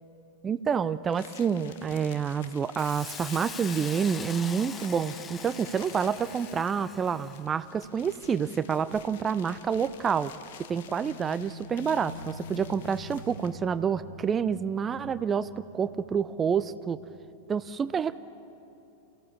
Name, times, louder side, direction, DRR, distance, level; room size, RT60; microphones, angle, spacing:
voice 1, 0.4-10.3 10.7-17.0 17.5-18.2, right 7 dB, 20° right, 15 dB, 0.5 m, -28 dB
sound 1, 1.1-13.7, left 9 dB, 55° left, 1.1 m, -51 dB
Hiss, 2.8-7.5, left 6 dB, 20° left, 1.0 m, -42 dB
sound 2, 4.0-9.4 9.7-9.8 11.0-17.6, left 2 dB, 75° left, 1.7 m, -48 dB
29.0 x 16.5 x 7.2 m, 2.9 s
figure-of-eight pair, 90°, 0 cm